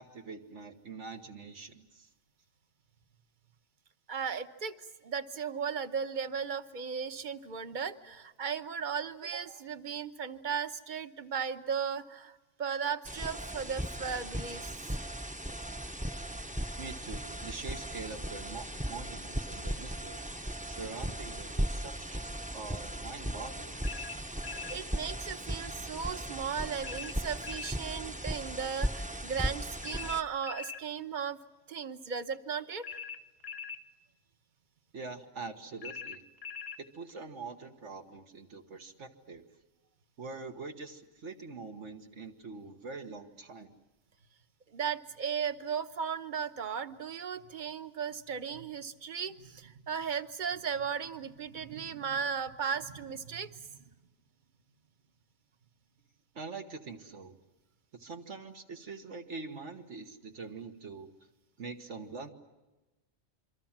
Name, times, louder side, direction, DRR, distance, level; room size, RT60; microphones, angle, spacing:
voice 1, 0.0-2.1 16.8-23.8 34.9-36.2 36.9-39.4 40.2-43.7 56.4-57.3 57.9-61.1 61.6-62.3, right 4 dB, 80° right, 4 dB, 1.8 m, -44 dB
voice 2, 4.1-4.8 5.0-14.7 24.7-31.4 31.7-33.0 44.7-53.8, right 6 dB, 45° right, 10 dB, 1.1 m, -36 dB
sound 1, 13.0-30.2, equal, 10° right, 0.7 m, -37 dB
sound 2, 23.8-24.8 26.8-27.8 29.8-30.8 32.8-33.8 35.8-36.8, left 6 dB, 60° left, 1.2 m, -42 dB
27.5 x 24.5 x 7.4 m, 1.1 s
omnidirectional pair, 1.2 m